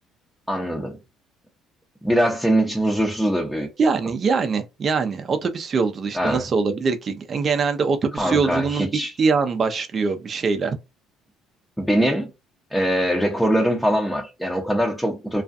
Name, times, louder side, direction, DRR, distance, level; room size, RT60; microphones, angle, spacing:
voice 1, 0.5-1.0 2.0-3.7 6.1-6.4 8.2-9.1 11.8-12.3 12.7-15.4, equal, 5° left, 0.7 m, -22 dB
voice 2, 3.8-8.9 9.2-10.8, right 4 dB, 45° right, 0.5 m, -23 dB
2.4 x 2.2 x 2.5 m
hypercardioid pair, 65°, 0 cm